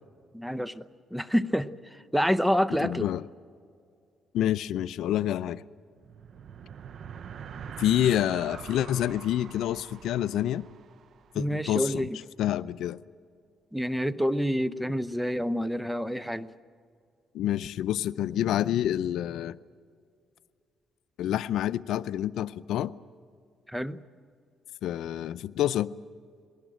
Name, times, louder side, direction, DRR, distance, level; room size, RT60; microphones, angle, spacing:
voice 1, 0.3-0.8 1.1-3.1 11.3-12.2 13.7-16.5 23.7-24.0, equal, ahead, 15 dB, 0.7 m, -28 dB
voice 2, 2.8-3.3 4.3-5.6 7.8-10.6 11.3-12.1 12.4-13.0 17.3-19.6 21.2-22.9 24.8-25.9, left 11 dB, 80° left, 16 dB, 0.5 m, -28 dB
sound 1, 5.9-11.6, right 8 dB, 60° right, 0.7 m, -44 dB
20.5 x 18.5 x 9.1 m, 2.2 s
cardioid pair, 90°, 0 cm